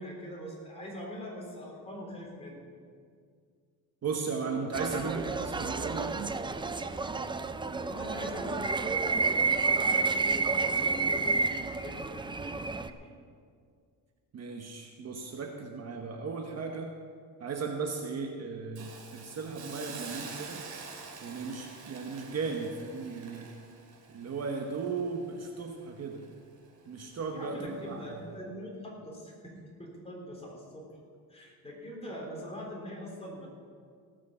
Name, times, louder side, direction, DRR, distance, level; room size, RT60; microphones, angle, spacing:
voice 1, 0.0-2.6 7.8-13.1 27.3-31.0 31.3-33.5, equal, 15° left, -3 dB, 3.8 m, -43 dB
voice 2, 4.0-6.3 14.3-16.9 17.4-20.6 21.2-23.5 24.1-26.2 26.9-28.1, right 4 dB, 40° right, 2 dB, 1.2 m, -36 dB
sound 1, 4.7-12.9, right 4 dB, 15° right, 0.4 m, -30 dB
Hiss, 18.8-25.8 26.2-26.3, right 5 dB, 70° right, 2.6 m, -46 dB
18.0 x 6.3 x 7.0 m, 2.2 s
cardioid pair, 115°, 39 cm